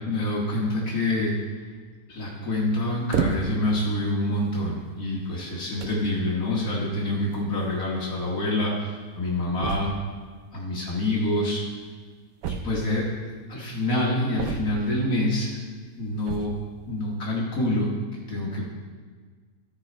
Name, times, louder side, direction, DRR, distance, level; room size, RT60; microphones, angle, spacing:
voice 1, 0.1-1.3 2.1-9.9 10.5-11.6 12.5-13.1 13.5-15.6 16.0-16.5 16.9-17.9 18.3-18.7, left 1 dB, 70° left, -3 dB, 1.8 m, -26 dB
sound 1, 3.1-3.7 4.5-4.7 5.5-5.6 5.8-6.1 7.3-7.4 7.6-7.7 8.0-8.1 9.6-10.1 12.4-13.1 14.4-15.0 16.2-16.7, right 6 dB, 80° right, 1.2 m, -30 dB
13.5 x 5.0 x 4.3 m, 1.5 s
omnidirectional pair, 1.6 m